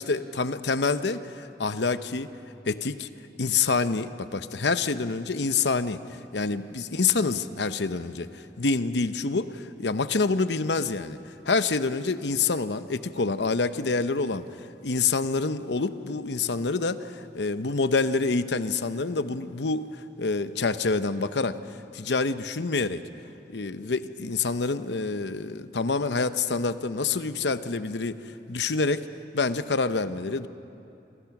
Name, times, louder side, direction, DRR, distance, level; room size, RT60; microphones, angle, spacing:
voice 1, 0.0-2.3 2.7-3.1 3.4-6.0 6.3-14.4 14.8-19.9 20.2-23.0 23.5-28.2 28.5-29.1 29.3-30.5, left 4 dB, 85° left, 12 dB, 0.8 m, -27 dB
27.5 x 26.0 x 6.0 m, 2.8 s
head